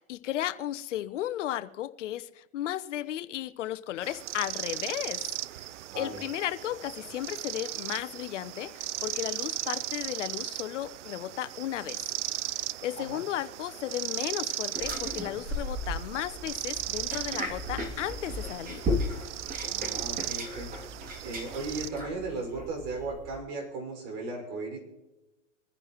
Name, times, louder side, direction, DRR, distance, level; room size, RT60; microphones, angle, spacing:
voice 1, 0.0-5.3 6.0-12.0 12.8-18.8, left 13 dB, 70° left, 12 dB, 0.9 m, -34 dB
sound 1, 4.0-21.9, right 14 dB, 70° right, 0.6 m, -37 dB
voice 2, 5.9-6.2 13.0-13.2 19.6-20.8 21.2-24.8, right 3 dB, 55° right, 2 dB, 5.7 m, -36 dB
sound 2, 14.7-23.4, left 1 dB, 25° right, 2.7 m, -36 dB
25.5 x 10.0 x 3.1 m, 1.1 s
hypercardioid pair, 105°, 37 cm